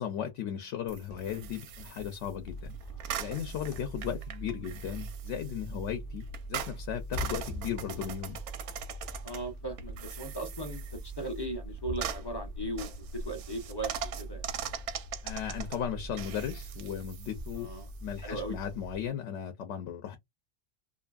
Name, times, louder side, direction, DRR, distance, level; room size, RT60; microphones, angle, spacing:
voice 1, 0.0-2.7 3.2-8.4 15.2-17.7 18.0-20.2, left 9 dB, 80° left, 0.9 m, -36 dB
sound 1, 0.9-19.1, right 6 dB, 80° right, 0.9 m, -42 dB
sound 2, 2.4-19.0, right 1 dB, 50° left, 0.9 m, -43 dB
voice 2, 9.2-13.9 14.2-14.5 17.6-17.9 18.2-18.6, right 1 dB, 30° left, 0.4 m, -38 dB
2.7 x 2.5 x 2.3 m
omnidirectional pair, 1.2 m